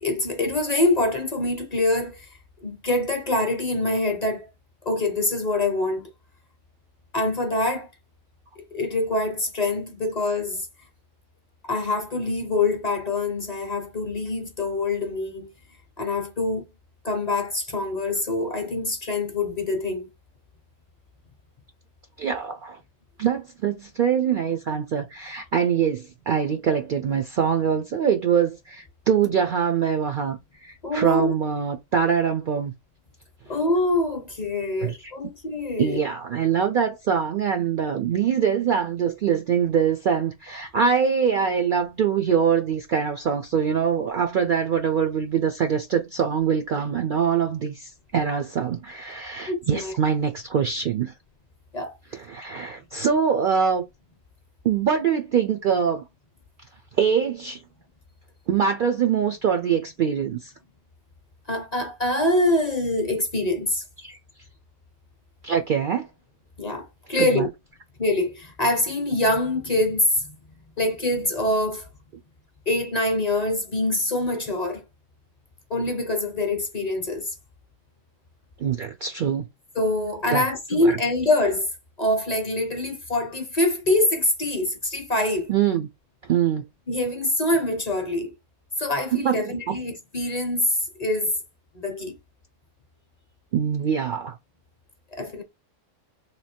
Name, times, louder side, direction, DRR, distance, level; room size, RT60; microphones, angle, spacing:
voice 1, 0.0-2.3 2.6-4.5 4.8-6.1 7.1-7.9 8.7-10.6 11.7-15.5 16.0-16.7 17.0-20.1 30.8-31.3 33.5-36.0 49.5-49.9 51.7-52.0 61.5-63.8 66.6-67.5 68.0-70.4 70.8-71.9 72.7-74.8 75.7-77.3 79.8-81.7 82.0-85.5 86.9-88.3 88.8-91.3 91.7-92.2 95.1-95.4, left 2 dB, 40° left, 0.7 m, -25 dB
voice 2, 22.2-22.8 23.2-32.7 34.8-35.1 35.8-51.1 52.1-53.8 54.6-56.0 57.0-57.6 58.5-60.5 64.0-64.2 65.4-66.1 67.2-67.5 78.6-79.5 80.3-80.4 80.7-81.0 85.5-85.9 86.3-86.6 89.1-89.8 93.5-94.4, right 7 dB, 60° right, 0.5 m, -24 dB
3.3 x 2.7 x 4.2 m
omnidirectional pair, 1.3 m